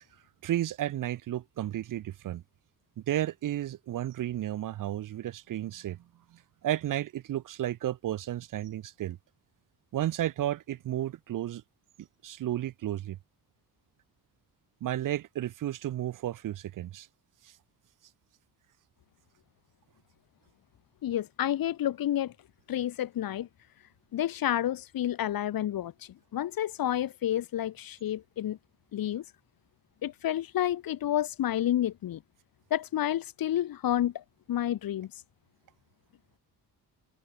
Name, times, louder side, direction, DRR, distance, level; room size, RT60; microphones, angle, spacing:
voice 1, 0.4-2.4 3.1-6.0 6.3-9.2 9.9-11.6 12.0-13.2 14.8-17.1, right 12 dB, 55° right, 0.5 m, -33 dB
voice 2, 21.0-22.3 22.7-23.5 24.1-28.6 28.9-29.2 30.0-32.2 32.7-35.1, left 12 dB, 60° left, 0.7 m, -30 dB
cardioid pair, 115°, 39 cm